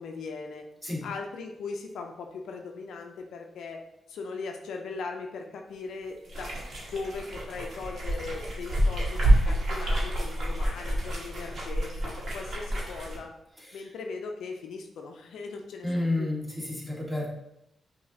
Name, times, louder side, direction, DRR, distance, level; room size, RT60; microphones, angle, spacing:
voice 1, 0.0-0.7 1.0-3.8 4.1-6.5 6.8-13.3 13.7-16.3, left 4 dB, 80° left, 3 dB, 0.4 m, -39 dB
sound 1, 6.2-13.2, right 1 dB, 65° right, 1.4 m, -28 dB
voice 2, 13.6-13.9 15.8-17.3, left 2 dB, 5° right, -3 dB, 1.5 m, -31 dB
5.5 x 2.7 x 2.7 m, 0.83 s
supercardioid pair, 55°, 0 cm